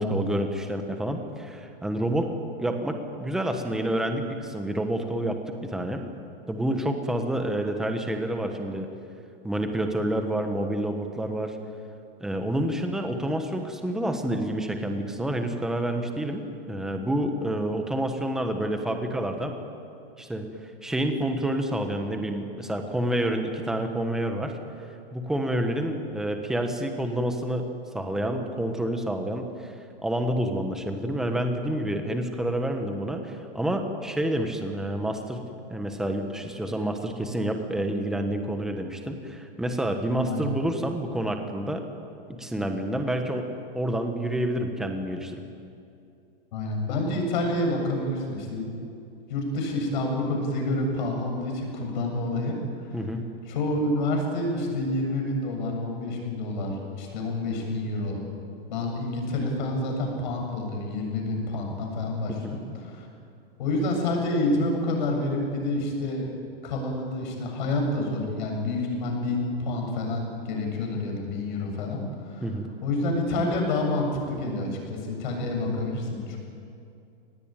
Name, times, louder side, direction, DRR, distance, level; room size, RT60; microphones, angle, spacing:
voice 1, 0.0-2.3 2.6-6.1 6.5-8.9 9.4-11.6 12.2-19.5 20.2-20.5 20.8-24.6 25.1-27.7 27.9-29.7 30.0-35.4 35.7-41.8 42.3-43.5 43.7-45.4 52.9-53.2 62.4-62.6 72.4-72.7, right 1 dB, ahead, 5 dB, 1.2 m, -28 dB
voice 2, 40.2-40.5 46.5-48.7 49.3-52.6 52.9-53.0 53.5-58.2 58.7-63.1 63.6-66.3 66.6-72.5 72.8-76.4, left 2 dB, 50° left, 2 dB, 7.6 m, -28 dB
26.0 x 19.5 x 9.1 m, 2.6 s
supercardioid pair, 170°, 30 cm